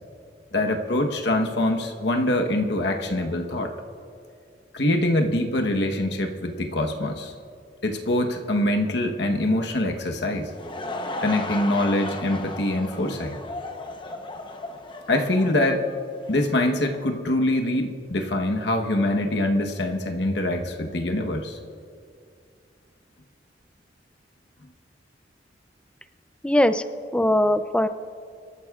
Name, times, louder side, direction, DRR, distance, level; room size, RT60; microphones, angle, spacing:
voice 1, 0.5-3.7 4.7-7.3 7.8-10.5 11.2-13.3 15.1-15.9 16.3-21.6, left 1 dB, 70° left, 3 dB, 1.1 m, -24 dB
Laughter / Crowd, 10.4-16.6, left 2 dB, 25° left, 0.8 m, -35 dB
voice 2, 26.4-26.8 27.1-27.9, left 1 dB, 5° left, 10 dB, 0.4 m, -20 dB
25.0 x 14.0 x 2.4 m, 2.4 s
head